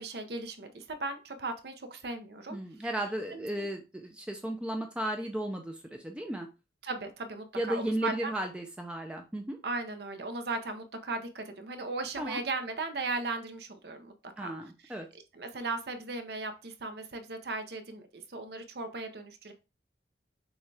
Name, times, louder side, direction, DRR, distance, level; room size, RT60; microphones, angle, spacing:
voice 1, 0.0-2.6 3.3-3.7 6.8-8.3 9.6-14.5 14.8-15.0 15.3-19.5, right 3 dB, 65° right, 8 dB, 0.7 m, -37 dB
voice 2, 2.5-6.5 7.6-9.6 12.2-12.4 14.4-15.1, right 1 dB, 5° right, 3 dB, 0.4 m, -35 dB
6.3 x 2.3 x 3.2 m, 0.30 s
head